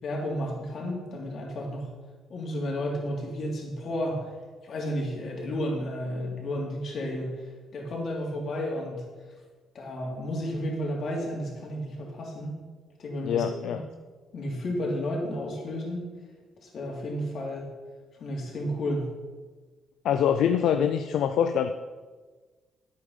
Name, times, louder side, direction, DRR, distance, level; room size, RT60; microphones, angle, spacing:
voice 1, 0.0-1.9 2.3-4.3 4.6-9.1 9.7-12.6 13.0-13.4 14.3-16.1 16.6-17.7 18.2-19.2, equal, 60° left, -1 dB, 3.2 m, -32 dB
voice 2, 13.2-13.8 20.0-21.7, left 8 dB, 80° left, 8 dB, 0.5 m, -24 dB
9.9 x 8.3 x 5.6 m, 1.4 s
cardioid pair, 90°, 0 cm